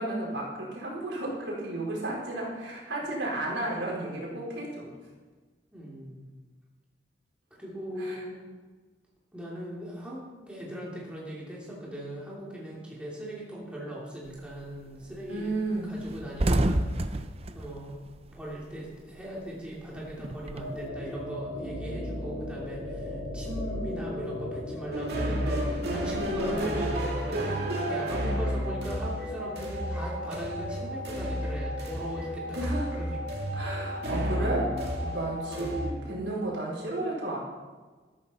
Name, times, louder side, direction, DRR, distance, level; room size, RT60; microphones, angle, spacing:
voice 1, 0.0-4.9 8.0-8.2 15.3-15.9 26.5-26.7 32.5-32.9 33.5-37.4, right 2 dB, 75° right, -4 dB, 4.8 m, -33 dB
voice 2, 5.7-6.3 7.6-8.4 9.3-17.2 17.5-18.0 18.3-33.2 35.5-35.8, right 1 dB, 5° right, -6 dB, 2.9 m, -39 dB
sound 1, 14.3-14.6 15.0-15.2 15.4-15.6 15.9-18.9 19.2-20.8, right 1 dB, 30° right, 0.6 m, -29 dB
sound 2, 20.6-26.6, left 1 dB, 70° left, 4.5 m, -37 dB
sound 3, 24.9-35.9, equal, 60° right, 2.4 m, -31 dB
13.5 x 13.0 x 4.3 m, 1.3 s
head